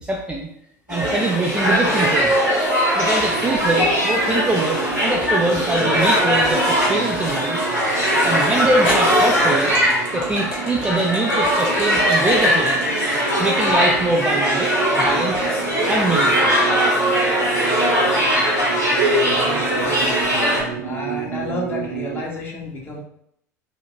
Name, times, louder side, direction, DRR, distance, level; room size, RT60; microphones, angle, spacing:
voice 1, 0.0-0.5 0.9-2.3 2.9-7.6 8.2-9.7 10.1-12.9 13.4-15.5 15.9-16.6, right 2 dB, 10° right, -1 dB, 0.5 m, -23 dB
sound 1, 0.9-20.6, equal, 90° left, 1.7 m, -20 dB
sound 2, 3.2-22.2, right 9 dB, 70° right, 0.6 m, -32 dB
sound 3, 4.7-5.3 6.1-6.2 8.1-8.2 8.8-15.0, left 1 dB, 55° left, 1.4 m, -32 dB
voice 2, 19.1-20.4 20.8-23.0, left 2 dB, 20° left, -2 dB, 1.3 m, -31 dB
4.6 x 2.9 x 3.5 m, 0.72 s
figure-of-eight pair, 75°, 9 cm